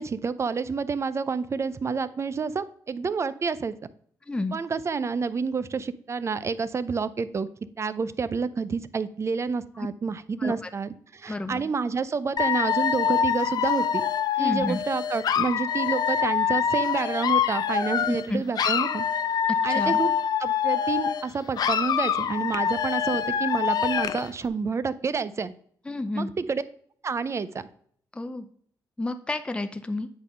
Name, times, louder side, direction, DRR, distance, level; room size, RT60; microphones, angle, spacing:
voice 1, 0.0-3.7 4.5-7.5 7.8-14.0 14.4-19.1 19.6-20.1 20.4-25.5 26.1-26.6 27.0-27.6, right 5 dB, 40° right, 15 dB, 0.5 m, -29 dB
voice 2, 4.3-4.6 9.8-9.9 10.4-10.7 11.3-11.7 14.4-14.8 18.1-18.4 19.7-20.0 25.9-26.3 28.1-28.5 29.0-30.1, left 2 dB, 15° left, 9 dB, 0.5 m, -31 dB
Dog / Alarm, 12.4-18.3 18.5-21.3 21.6-24.3, left 8 dB, 60° left, 0.5 m, -25 dB
8.7 x 3.7 x 5.5 m, 0.62 s
cardioid pair, 80°, 8 cm